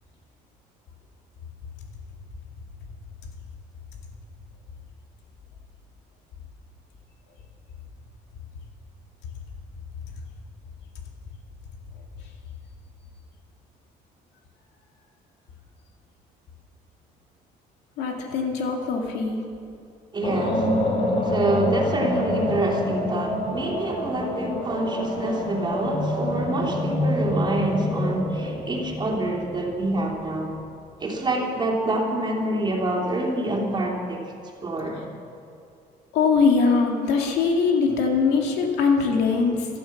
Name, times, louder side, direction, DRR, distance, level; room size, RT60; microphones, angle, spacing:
voice 1, 18.0-19.4 36.1-39.7, left 5 dB, 90° left, 2 dB, 2.3 m, -22 dB
voice 2, 20.1-20.7 21.2-30.5 31.0-34.2 34.6-35.1, right 2 dB, 25° right, -1 dB, 3.0 m, -26 dB
sound 1, 20.2-30.4, left 1 dB, 30° left, 2.3 m, -27 dB
14.5 x 12.0 x 7.3 m, 2.5 s
cardioid pair, 110°, 17 cm